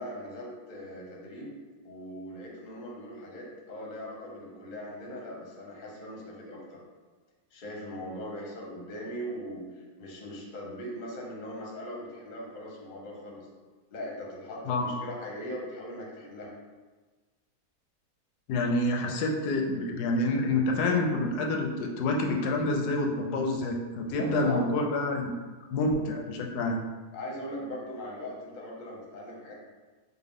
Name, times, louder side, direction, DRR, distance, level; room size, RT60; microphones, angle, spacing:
voice 1, 0.0-1.5 1.8-6.8 7.5-13.5 13.9-16.5 24.1-24.8 27.1-29.5, equal, 45° left, -3 dB, 0.7 m, -40 dB
voice 2, 18.5-25.3 25.7-26.8, left 2 dB, 80° left, 2 dB, 1.1 m, -27 dB
4.6 x 2.1 x 3.5 m, 1.3 s
omnidirectional pair, 1.7 m